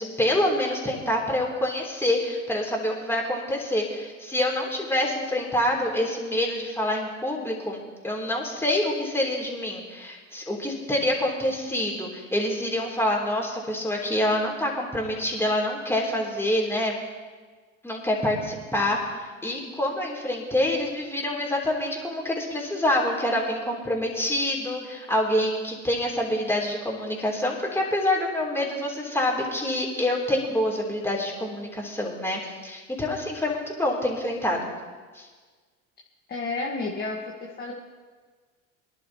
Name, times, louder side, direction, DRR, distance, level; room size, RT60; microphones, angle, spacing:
voice 1, 0.0-16.9 17.8-34.7 35.1-35.3, left 1 dB, 5° left, -2 dB, 3.6 m, -26 dB
voice 2, 36.3-37.7, left 3 dB, 25° left, -2 dB, 1.8 m, -31 dB
23.5 x 11.0 x 3.1 m, 1.4 s
hypercardioid pair, 80°, 40 cm